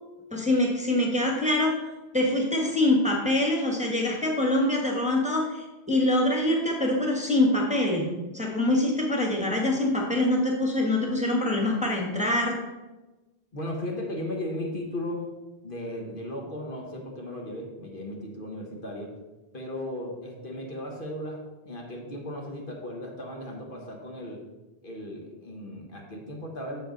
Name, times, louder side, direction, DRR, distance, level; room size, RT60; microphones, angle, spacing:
voice 1, 0.3-1.8 2.1-12.6, left 1 dB, 5° right, -2 dB, 1.3 m, -24 dB
voice 2, 13.5-15.3 15.6-19.1 19.5-24.4 24.8-26.8, left 1 dB, 50° left, 0 dB, 1.3 m, -36 dB
7.8 x 6.8 x 3.9 m, 1.1 s
omnidirectional pair, 1.2 m